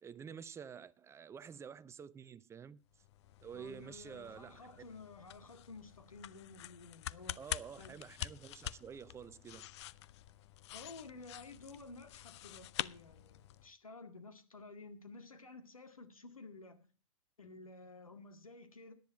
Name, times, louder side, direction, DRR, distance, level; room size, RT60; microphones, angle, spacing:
voice 1, 0.0-2.8 3.4-4.8 7.4-9.7, right 7 dB, 15° right, 0.5 m, -49 dB
sound 1, 2.9-13.7, left 14 dB, 55° left, 0.6 m, -47 dB
voice 2, 3.5-7.4 7.8-7.9 10.7-16.9 17.4-18.9, left 3 dB, 90° left, 2.0 m, -53 dB
10.5 x 10.5 x 5.7 m
hypercardioid pair, 105°, 17 cm